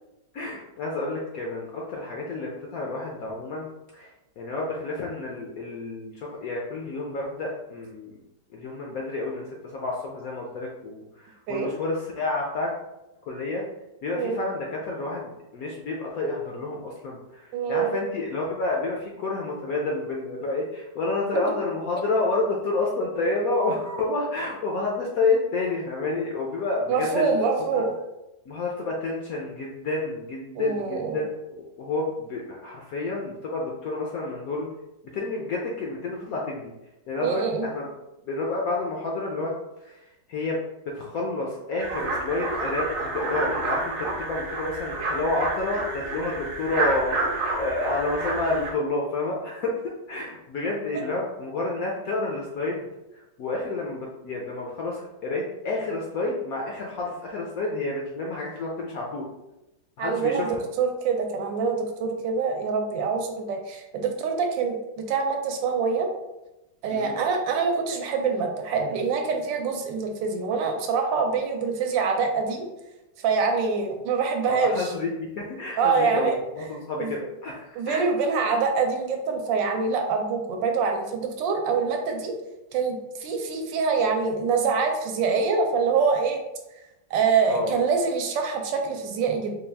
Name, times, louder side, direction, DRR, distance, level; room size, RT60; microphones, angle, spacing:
voice 1, 0.3-4.1 4.4-8.1 8.5-12.7 13.3-13.6 14.0-27.3 28.5-34.7 35.1-36.7 37.1-37.9 38.2-39.5 39.8-40.0 40.3-49.8 50.1-52.9 53.4-59.3 60.0-60.6 66.9-67.1 74.4-78.1 87.5-87.7, left 2 dB, 70° left, -2 dB, 0.8 m, -29 dB
voice 2, 17.5-18.0 26.9-28.0 30.6-31.2 37.2-37.7 50.9-51.0 60.0-66.1 66.8-72.7 73.2-74.9 75.8-76.4 77.0-77.1 77.7-82.3 82.7-86.4 87.1-89.6, right 5 dB, 80° right, 3 dB, 1.3 m, -25 dB
sound 1, 41.8-48.7, right 2 dB, 60° right, 0.9 m, -29 dB
4.2 x 2.3 x 3.3 m, 0.96 s
omnidirectional pair, 2.0 m